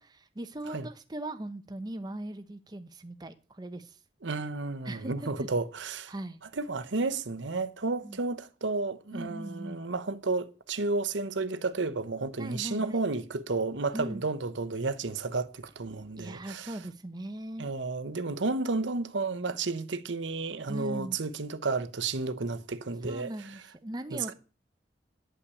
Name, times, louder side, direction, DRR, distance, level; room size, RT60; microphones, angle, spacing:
voice 1, 0.0-4.0 4.8-5.3 6.1-6.4 8.0-8.2 9.1-9.8 12.4-13.0 13.9-14.2 16.2-17.7 20.7-21.2 23.0-24.3, right 1 dB, 20° right, 0.7 m, -39 dB
voice 2, 4.2-6.1 6.5-16.7 17.6-23.3 24.1-24.3, right 3 dB, 80° right, 0.9 m, -32 dB
9.7 x 5.7 x 8.4 m
head